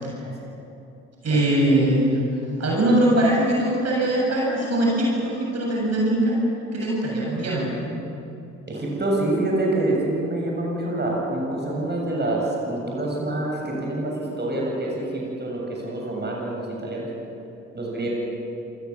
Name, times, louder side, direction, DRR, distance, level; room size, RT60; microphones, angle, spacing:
voice 1, 1.2-2.2 2.6-6.4 6.7-7.7, right 1 dB, 45° right, -2 dB, 7.8 m, -21 dB
voice 2, 8.7-17.1 17.7-18.1, right 2 dB, 30° right, -2 dB, 8.0 m, -26 dB
28.0 x 20.5 x 7.4 m, 2.8 s
figure-of-eight pair, 45°, 36 cm